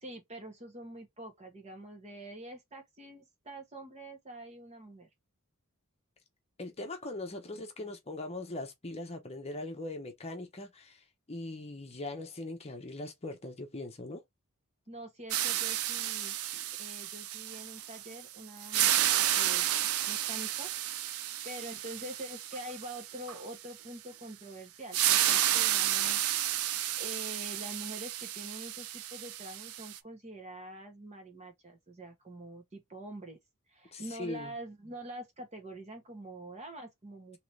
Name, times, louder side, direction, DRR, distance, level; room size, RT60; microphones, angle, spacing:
voice 1, 0.0-5.1 14.9-16.4 16.8-19.7 20.1-20.7 21.4-26.4 27.0-33.4 33.7-37.4, right 1 dB, 30° right, 1.3 m, -45 dB
voice 2, 6.6-14.2 33.9-34.5, left 2 dB, 30° left, 0.8 m, -40 dB
sound 1, 15.3-18.2 18.6-23.4 24.9-30.0, right 12 dB, 90° right, 0.5 m, -31 dB
3.8 x 3.0 x 3.2 m
head